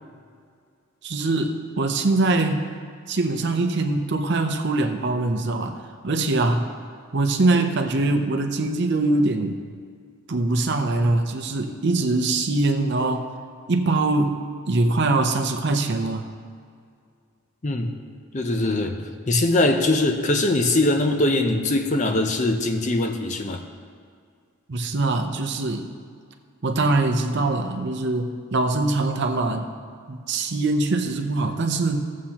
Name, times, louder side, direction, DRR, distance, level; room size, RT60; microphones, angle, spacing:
voice 1, 1.0-2.7 3.1-6.7 7.1-9.6 10.3-13.3 13.7-16.3 24.7-25.9 26.6-29.7 30.1-32.2, right 2 dB, 50° right, 5 dB, 0.6 m, -23 dB
voice 2, 18.3-23.6, left 2 dB, 35° left, 5 dB, 0.5 m, -22 dB
15.0 x 7.3 x 2.9 m, 2.2 s
head